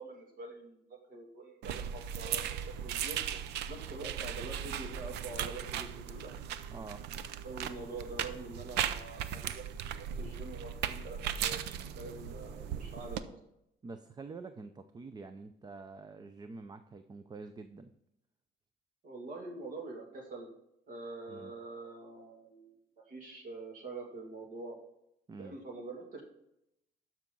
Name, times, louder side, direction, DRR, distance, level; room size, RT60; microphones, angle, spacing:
voice 1, 0.0-3.4 3.7-6.3 7.4-9.6 10.0-13.4 19.0-20.5 20.9-24.8 25.4-26.2, right 2 dB, 55° right, 1 dB, 2.5 m, -45 dB
sound 1, 1.6-13.2, right 9 dB, 80° right, 0.6 m, -38 dB
voice 2, 6.7-7.1 13.8-17.9 21.3-21.5 25.3-25.6, right 4 dB, 25° right, 10 dB, 0.6 m, -47 dB
12.0 x 5.9 x 3.9 m, 0.81 s
cardioid pair, 110°, 17 cm